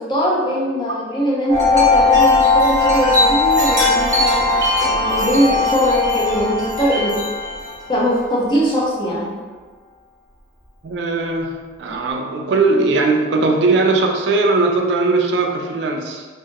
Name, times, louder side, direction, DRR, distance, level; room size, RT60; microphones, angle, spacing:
voice 1, 0.1-7.2 7.9-9.3, equal, 25° left, -5 dB, 0.5 m, -20 dB
Wind chime, 1.5-8.0, left 3 dB, 20° right, 0.8 m, -17 dB
voice 2, 10.8-16.3, right 3 dB, 65° right, 2 dB, 0.3 m, -19 dB
2.6 x 2.3 x 2.8 m, 1.4 s
head